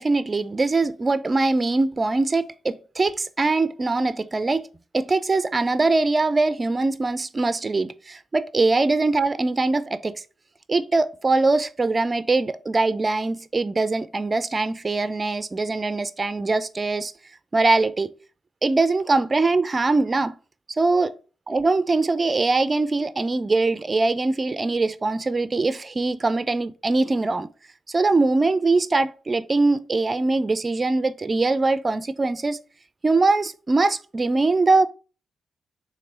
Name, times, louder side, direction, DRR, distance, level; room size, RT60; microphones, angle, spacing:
voice 1, 0.0-4.7 4.9-10.2 10.7-17.1 17.5-18.1 18.6-20.3 20.8-21.1 21.5-27.5 27.9-32.6 33.0-34.9, right 3 dB, 35° right, 0.4 m, -22 dB
3.6 x 3.3 x 4.4 m
supercardioid pair, 60°, 0 cm